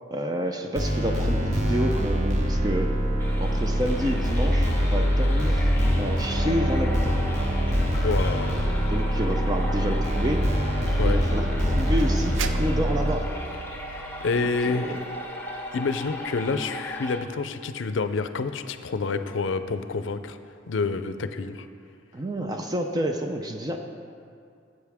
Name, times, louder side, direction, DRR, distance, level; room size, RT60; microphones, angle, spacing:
voice 1, 0.1-2.9 3.4-5.7 6.0-7.2 8.3-8.4 8.6-10.4 11.0-13.3 14.3-15.0 22.1-23.8, equal, 20° right, 4 dB, 0.5 m, -29 dB
sound 1, 0.8-13.2, equal, 40° right, 1.1 m, -24 dB
sound 2, 1.0-14.6, right 6 dB, 80° right, 0.5 m, -43 dB
sound 3, 3.2-17.2, left 1 dB, 10° left, 1.0 m, -37 dB
voice 2, 8.0-8.7 11.0-11.2 14.2-15.0 15.7-20.4 20.7-21.7, left 4 dB, 75° left, 10 dB, 0.5 m, -28 dB
13.0 x 8.0 x 3.5 m, 2.4 s
head